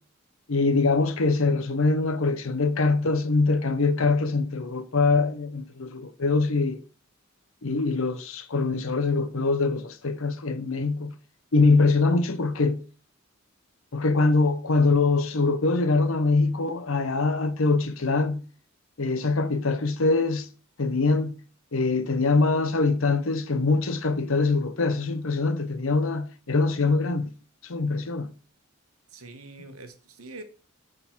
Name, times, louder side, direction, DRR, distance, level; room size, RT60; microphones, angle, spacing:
voice 1, 0.5-6.8 7.6-11.1 11.5-12.8 13.9-18.4 19.0-20.5 20.8-21.4 21.7-27.3 27.6-28.3, left 3 dB, 70° left, 0.8 m, -23 dB
voice 2, 29.1-30.4, right 2 dB, 85° right, 1.2 m, -44 dB
9.7 x 3.8 x 4.5 m
head